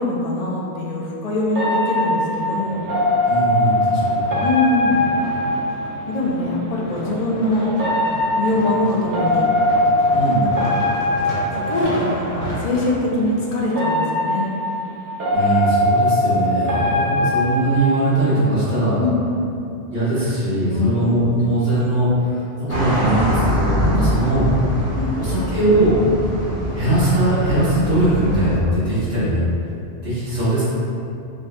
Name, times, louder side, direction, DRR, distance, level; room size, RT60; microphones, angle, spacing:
voice 1, 0.0-2.9 4.4-5.0 6.1-7.7 8.4-9.5 10.4-10.7 11.5-14.5 19.0-19.2 20.7-21.0 23.9-24.1 25.0-25.4, left 2 dB, 60° left, -4 dB, 0.4 m, -23 dB
sound 1, 1.6-6.2 7.7-12.4 13.7-18.3, left 1 dB, 65° right, 1.1 m, -21 dB
sound 2, 2.4-13.4 14.0-14.1, equal, 85° left, 1.5 m, -32 dB
voice 2, 3.2-4.4 10.1-10.5 15.3-19.0 19.9-24.5 25.2-25.9 26.7-29.4 30.0-30.6, right 1 dB, 35° right, -13 dB, 1.5 m, -20 dB
sound 3, 22.7-28.6, equal, 15° left, 0.7 m, -24 dB
3.9 x 2.1 x 3.4 m, 2.7 s
omnidirectional pair, 1.3 m